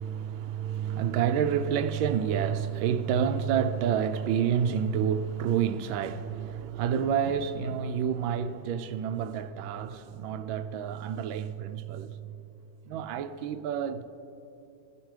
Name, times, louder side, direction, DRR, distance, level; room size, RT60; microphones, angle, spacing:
voice 1, 0.0-12.2 12.9-14.0, right 8 dB, 85° right, 1.4 m, -29 dB
21.0 x 12.5 x 3.2 m
omnidirectional pair, 2.1 m